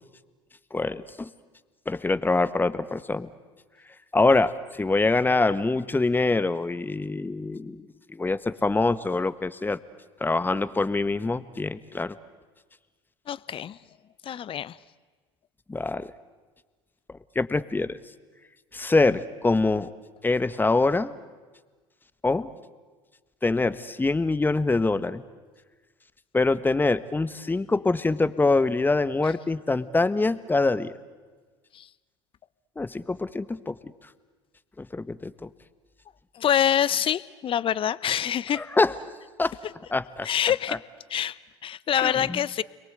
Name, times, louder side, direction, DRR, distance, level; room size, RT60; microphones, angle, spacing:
voice 1, 0.7-1.3 1.8-3.3 4.1-9.8 10.2-12.2 15.7-16.1 17.3-18.0 18.7-19.9 20.2-21.1 22.2-22.5 23.4-25.2 26.3-30.9 32.8-33.7 34.8-35.5 38.6-38.9 39.4-39.5 39.9-40.3 40.7-40.8 42.0-42.4, left 3 dB, 15° left, 13 dB, 1.4 m, -24 dB
voice 2, 13.3-13.8 14.2-14.8 29.2-29.3 31.7-31.9 36.3-38.6 40.2-40.8 41.1-42.6, left 10 dB, 40° left, 19 dB, 0.9 m, -26 dB
30.0 x 22.5 x 8.1 m, 1.4 s
hypercardioid pair, 75°, 14 cm